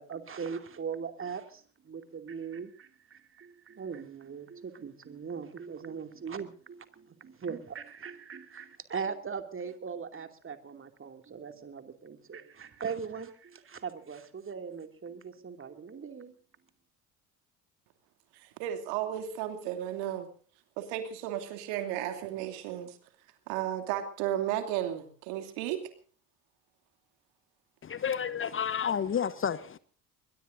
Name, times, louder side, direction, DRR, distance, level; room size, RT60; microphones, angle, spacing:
voice 1, 0.0-16.3, right 6 dB, 30° right, 2.6 m, -40 dB
voice 2, 18.3-20.3 20.8-23.0 23.5-25.8, right 11 dB, 65° right, 2.9 m, -34 dB
voice 3, 27.8-29.8, left 8 dB, 30° left, 1.0 m, -30 dB
22.5 x 21.5 x 2.6 m
figure-of-eight pair, 55°, 43 cm